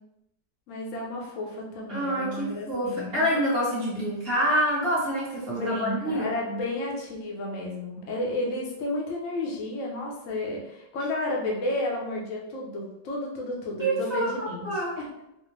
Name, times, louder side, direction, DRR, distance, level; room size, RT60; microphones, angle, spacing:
voice 1, 0.7-3.4 5.5-14.7 15.0-15.1, left 1 dB, 55° left, -2 dB, 1.0 m, -32 dB
voice 2, 1.9-6.3 13.8-14.3 14.6-14.9, equal, 35° right, -7 dB, 1.3 m, -27 dB
4.3 x 2.1 x 3.2 m, 0.86 s
omnidirectional pair, 2.0 m